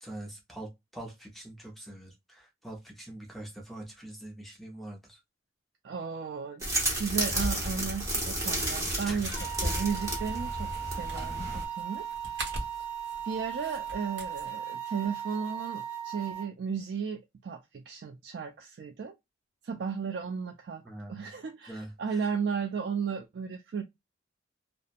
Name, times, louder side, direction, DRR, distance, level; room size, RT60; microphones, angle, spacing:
voice 1, 0.0-5.2 9.1-9.2 20.8-21.2 21.7-22.2, right 1 dB, ahead, 0.6 m, -44 dB
voice 2, 5.8-9.3 9.6-12.1 13.3-19.1 19.6-20.8 21.1-23.8, right 6 dB, 60° right, 0.3 m, -34 dB
sound 1, 6.6-11.6, right 1 dB, 15° right, 0.9 m, -32 dB
sound 2, 6.9-14.5, right 1 dB, 75° right, 1.1 m, -41 dB
sound 3, 9.3-16.4, right 9 dB, 15° left, 1.0 m, -37 dB
2.8 x 2.0 x 2.4 m
head